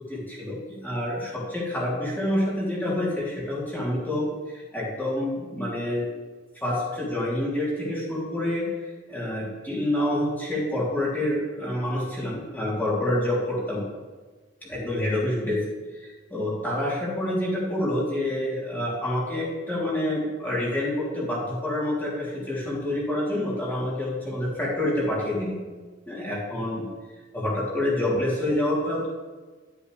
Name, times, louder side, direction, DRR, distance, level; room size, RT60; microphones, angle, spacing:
voice 1, 0.1-6.1 6.5-8.7 9.1-13.8 14.6-15.6 15.9-25.5 26.1-26.8 27.3-29.1, left 1 dB, 10° left, -7 dB, 3.2 m, -27 dB
12.5 x 8.0 x 3.3 m, 1.4 s
head